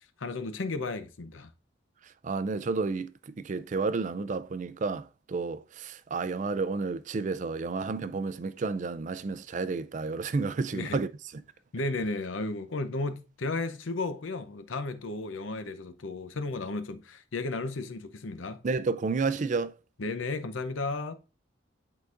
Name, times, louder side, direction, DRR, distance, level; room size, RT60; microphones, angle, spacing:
voice 1, 0.2-1.5 10.7-11.0 11.7-18.6 20.0-21.1, left 3 dB, 90° left, 0.7 m, -34 dB
voice 2, 2.2-11.1 18.6-19.7, right 4 dB, 40° right, 0.3 m, -31 dB
10.5 x 3.9 x 2.5 m
head